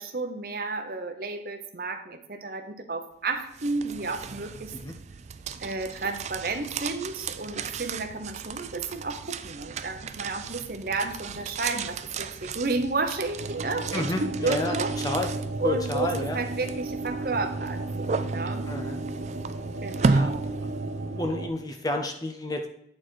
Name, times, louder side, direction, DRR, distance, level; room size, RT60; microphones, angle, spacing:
voice 1, 0.0-4.7 5.6-15.0 15.6-18.7 19.8-20.4, right 3 dB, 55° right, 6 dB, 0.9 m, -32 dB
sound 1, 3.3-21.3, right 4 dB, 35° right, 0.3 m, -34 dB
sound 2, 13.4-21.5, right 2 dB, 85° right, 0.8 m, -33 dB
voice 2, 13.9-14.7 15.0-15.3 15.6-16.4 18.7-19.0 20.0-20.3 21.2-22.7, left 2 dB, 20° left, 4 dB, 0.6 m, -30 dB
8.7 x 4.2 x 4.6 m, 0.76 s
head